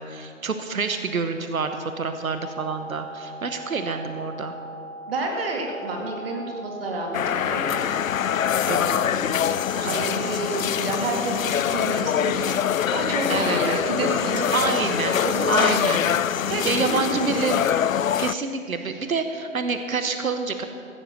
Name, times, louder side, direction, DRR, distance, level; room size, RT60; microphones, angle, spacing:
voice 1, 0.0-4.5 8.7-10.3 13.3-13.8 14.5-15.2 15.5-16.0 16.6-17.7 18.2-20.6, right 4 dB, 80° right, 7 dB, 1.2 m, -28 dB
sound 1, 2.4-10.8, right 1 dB, 5° right, 0.8 m, -39 dB
voice 2, 5.1-7.9 9.8-12.6 12.9-15.9 16.5-17.5, right 2 dB, 45° right, 0 dB, 2.5 m, -30 dB
sound 2, 7.1-18.3, left 9 dB, 75° left, 0.5 m, -24 dB
16.0 x 7.8 x 6.6 m, 2.5 s
figure-of-eight pair, 150°, 41 cm